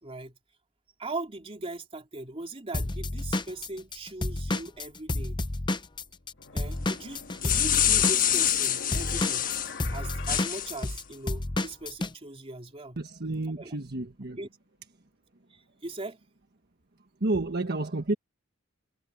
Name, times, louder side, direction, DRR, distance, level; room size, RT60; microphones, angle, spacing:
voice 1, 0.0-0.4 1.0-5.4 6.5-9.5 9.9-13.0 13.6-13.7 14.4-14.5 15.5-16.2, right 2 dB, 30° right, 3.6 m, -40 dB
Drum kit / Drum, 2.7-6.3 6.6-12.1, left 2 dB, 25° left, 0.7 m, -30 dB
sound 1, 5.6-5.7 6.4-11.5, left 4 dB, 60° left, 1.9 m, -44 dB
sound 2, 7.2-9.7 10.3-10.9, left 10 dB, 45° left, 1.3 m, -26 dB
voice 2, 13.0-14.4 17.2-18.1, right 2 dB, 55° right, 1.4 m, -30 dB
head